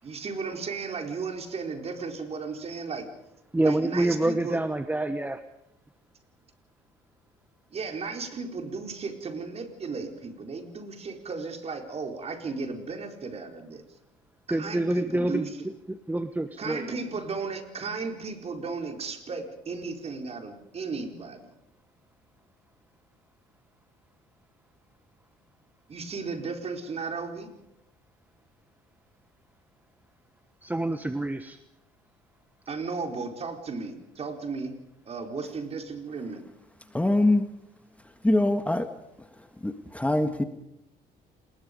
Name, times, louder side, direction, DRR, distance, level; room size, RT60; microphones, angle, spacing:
voice 1, 0.0-3.1 3.6-4.6 7.7-13.8 14.5-15.6 16.6-21.5 25.9-27.5 32.7-34.7 35.1-36.4, right 4 dB, 35° right, 5 dB, 4.5 m, -35 dB
voice 2, 3.5-5.4 14.5-15.5 15.9-17.0 30.6-31.6, right 1 dB, 10° right, 10 dB, 1.2 m, -27 dB
voice 3, 36.9-37.5 38.2-38.9 39.6-40.4, left 1 dB, 10° left, 8 dB, 1.5 m, -23 dB
28.5 x 20.5 x 5.3 m, 0.87 s
cardioid pair, 110°, 17 cm